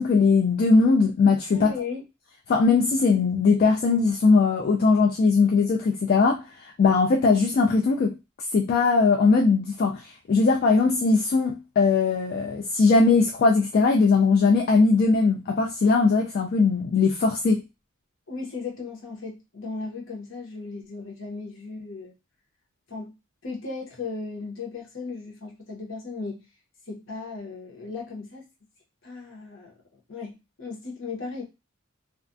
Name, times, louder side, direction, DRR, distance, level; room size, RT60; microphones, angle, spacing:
voice 1, 0.0-1.7 2.5-6.4 6.8-8.2 8.5-17.6, left 4 dB, 45° left, 0.3 m, -20 dB
voice 2, 1.5-2.0 18.3-22.1 22.9-23.1 23.4-26.4 26.9-28.5 29.0-31.4, left 4 dB, 65° left, 0.9 m, -36 dB
2.4 x 2.2 x 2.5 m
head